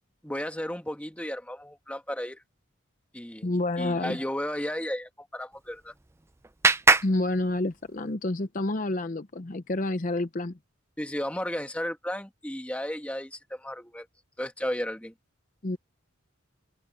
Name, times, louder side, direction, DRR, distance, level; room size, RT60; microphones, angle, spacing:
voice 1, 0.2-2.4 3.1-3.5 3.8-5.9 11.0-14.1 14.4-15.1, equal, 5° left, 1.5 m, -34 dB
voice 2, 3.4-4.2 7.0-10.6 15.6-15.8, left 2 dB, 40° left, 0.7 m, -29 dB
Clapping, 5.5-8.1, right 3 dB, 15° right, 0.4 m, -26 dB
open air
head